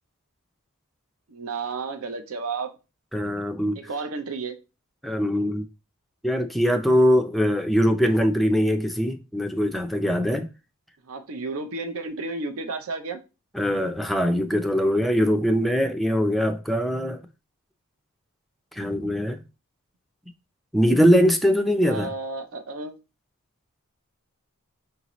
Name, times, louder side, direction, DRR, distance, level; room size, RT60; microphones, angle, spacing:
voice 1, 1.3-2.7 3.7-4.6 11.1-13.2 21.8-23.0, right 3 dB, 70° right, 0.6 m, -32 dB
voice 2, 3.1-3.8 5.0-5.7 6.2-10.5 13.5-17.2 18.7-19.4 20.7-22.1, equal, ahead, 0.4 m, -22 dB
5.6 x 2.7 x 3.0 m
head